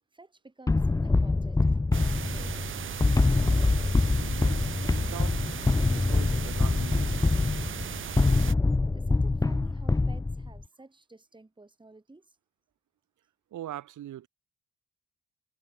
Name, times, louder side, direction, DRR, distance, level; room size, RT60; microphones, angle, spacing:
voice 1, 0.1-2.9 8.9-12.3, right 2 dB, 15° right, 4.8 m, -52 dB
sound 1, 0.7-10.6, left 3 dB, 10° left, 0.6 m, -25 dB
sound 2, 1.9-8.5, right 9 dB, 40° right, 0.8 m, -37 dB
voice 2, 4.2-5.4 5.9-7.2 13.5-14.3, right 12 dB, 75° right, 7.1 m, -42 dB
cardioid pair, 90°, 30 cm